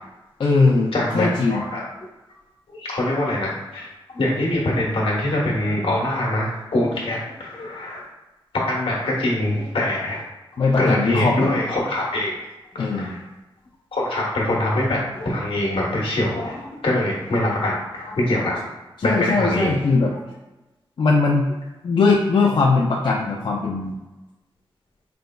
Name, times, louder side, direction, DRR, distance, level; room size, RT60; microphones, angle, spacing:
voice 1, 0.4-1.6 10.6-11.5 12.8-13.1 19.0-20.1 21.0-21.5 21.8-24.0, left 3 dB, 60° left, -2 dB, 0.4 m, -20 dB
voice 2, 0.9-1.8 2.7-8.1 8.6-10.2 10.8-12.3 12.7-13.2 13.9-18.6 19.0-19.8, left 1 dB, 80° left, -3 dB, 1.2 m, -24 dB
5.1 x 3.2 x 2.2 m, 1.1 s
wide cardioid pair, 110°, 9 cm